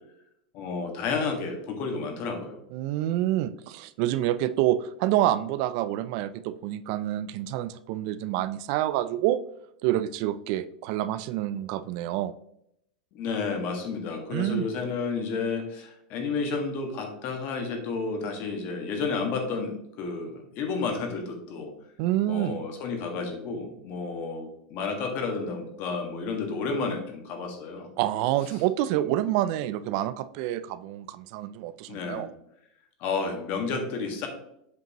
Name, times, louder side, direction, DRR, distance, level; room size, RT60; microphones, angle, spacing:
voice 1, 0.5-2.6 13.1-21.7 22.3-27.9 28.9-29.1 31.9-32.2 33.0-34.3, left 4 dB, 45° left, 4 dB, 1.6 m, -31 dB
voice 2, 2.7-9.4 9.8-12.3 14.3-14.7 22.0-22.6 28.0-32.3, right 13 dB, 55° right, 13 dB, 0.3 m, -27 dB
7.7 x 5.2 x 2.9 m, 0.76 s
supercardioid pair, 145°, 4 cm